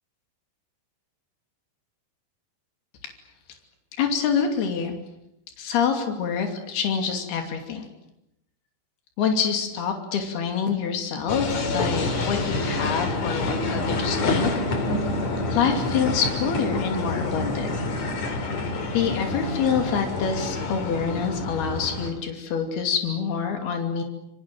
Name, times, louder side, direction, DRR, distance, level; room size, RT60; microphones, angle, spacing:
voice 1, 4.0-4.9 5.6-7.9 9.2-14.5 15.5-17.8 18.9-24.0, left 6 dB, 80° left, 4 dB, 4.7 m, -26 dB
sound 1, 11.3-22.1, left 2 dB, 45° left, 3.9 m, -27 dB
27.0 x 25.0 x 7.7 m, 0.83 s
omnidirectional pair, 4.4 m